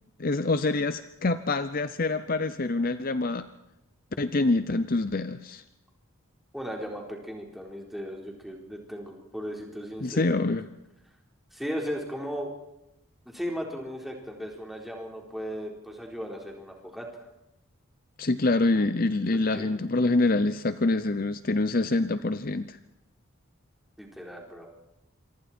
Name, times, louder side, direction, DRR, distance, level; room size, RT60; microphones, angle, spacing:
voice 1, 0.2-3.5 4.2-5.6 10.0-10.7 18.2-22.8, left 2 dB, 40° left, 12 dB, 0.7 m, -26 dB
voice 2, 6.5-10.3 11.5-12.5 13.3-17.3 18.7-18.9 19.5-19.7 24.0-24.7, equal, ahead, 0 dB, 4.1 m, -36 dB
27.0 x 24.5 x 4.5 m, 0.89 s
head